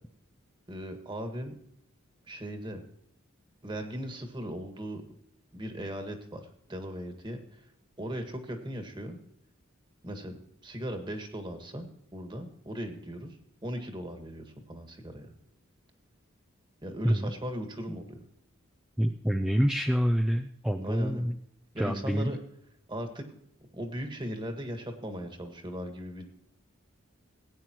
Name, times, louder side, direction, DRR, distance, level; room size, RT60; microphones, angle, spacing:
voice 1, 0.7-1.5 2.3-2.8 3.6-5.0 5.5-7.6 8.0-9.2 10.0-10.4 10.6-13.4 13.6-15.3 16.8-18.2 20.8-21.2 21.7-22.4 22.9-23.2 23.6-26.3, equal, 25° right, 5 dB, 1.7 m, -38 dB
voice 2, 17.0-17.4 19.0-21.4 21.8-22.3, equal, 5° right, 4 dB, 0.4 m, -27 dB
18.0 x 9.3 x 3.0 m, 0.70 s
head